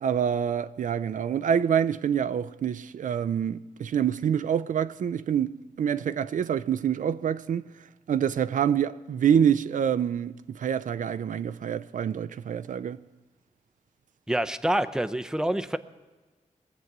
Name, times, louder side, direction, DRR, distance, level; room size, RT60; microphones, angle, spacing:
voice 1, 0.0-7.7 8.1-13.0, right 8 dB, 80° right, 0.4 m, -26 dB
voice 2, 14.3-15.8, right 1 dB, 5° right, 0.5 m, -26 dB
21.0 x 7.9 x 6.0 m
wide cardioid pair, 105°, 13 cm